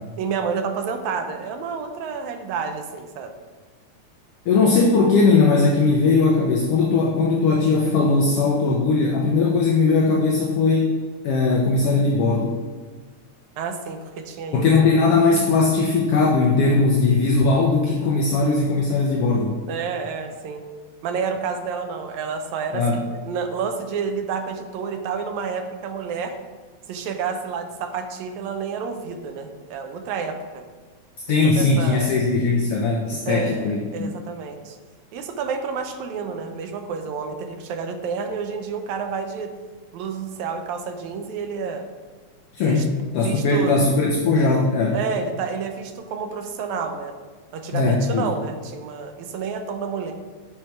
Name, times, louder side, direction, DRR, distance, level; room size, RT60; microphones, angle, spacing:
voice 1, 0.2-3.3 13.6-15.0 19.7-20.7 21.0-26.4 26.9-30.6 31.3-32.1 33.3-34.8 35.1-39.5 39.9-41.9 42.6-42.9 43.2-43.7 44.9-47.1 47.5-50.1, right 5 dB, 85° right, 6 dB, 2.0 m, -29 dB
voice 2, 4.5-11.0 11.2-12.5 14.5-19.6 22.7-23.0 31.3-34.1 42.5-45.0 47.7-48.3, left 3 dB, 75° left, 0 dB, 1.4 m, -19 dB
8.2 x 4.4 x 4.5 m, 1.4 s
omnidirectional pair, 3.3 m